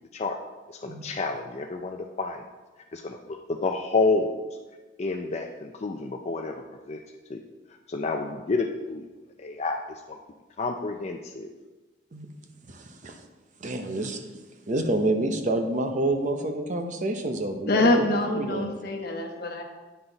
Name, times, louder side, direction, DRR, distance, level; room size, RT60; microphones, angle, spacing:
voice 1, 0.7-2.4 2.9-4.4 5.0-7.0 7.3-7.4 7.9-9.1 9.4-10.2 10.6-11.5, left 3 dB, 35° left, 3 dB, 0.4 m, -29 dB
voice 2, 12.7-13.3 13.6-14.2 14.7-18.7, right 1 dB, 45° right, 6 dB, 0.7 m, -28 dB
voice 3, 17.7-19.6, left 2 dB, 60° left, 3 dB, 1.1 m, -24 dB
9.4 x 5.9 x 3.9 m, 1.2 s
head